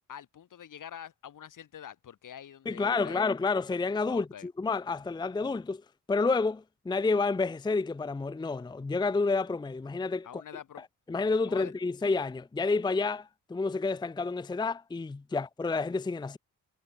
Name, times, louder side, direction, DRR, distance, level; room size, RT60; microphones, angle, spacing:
voice 1, 0.0-3.3 4.1-4.5 10.2-10.9 11.4-11.7 15.3-15.4, left 9 dB, 70° left, 4.4 m, -46 dB
voice 2, 2.7-5.8 6.1-10.4 11.1-16.4, left 3 dB, 15° left, 0.5 m, -29 dB
cardioid pair, 110°, 32 cm